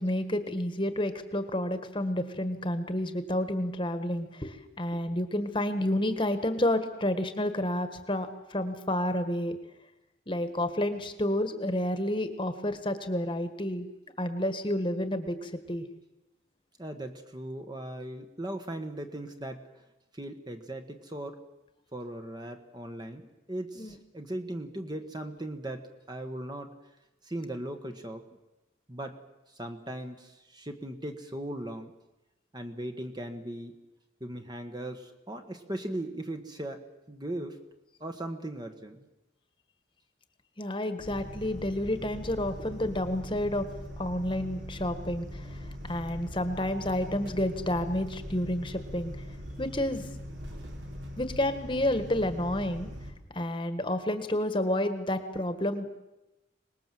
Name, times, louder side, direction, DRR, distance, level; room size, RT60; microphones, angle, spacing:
voice 1, 0.0-9.6 10.3-13.9 14.2-15.8 23.8-23.9 40.6-43.7 44.0-49.1 49.6-50.0 51.2-52.9 53.3-55.9, left 1 dB, 25° left, 9 dB, 1.6 m, -30 dB
voice 2, 16.8-19.7 20.1-21.4 21.9-26.7 27.2-28.2 28.9-29.2 29.5-31.9 32.5-33.8 34.2-36.8 37.1-37.6 38.0-39.1, right 1 dB, 20° right, 6 dB, 1.4 m, -38 dB
sound 1, 41.0-53.1, equal, 65° right, 3.9 m, -41 dB
25.0 x 20.0 x 7.7 m, 0.99 s
head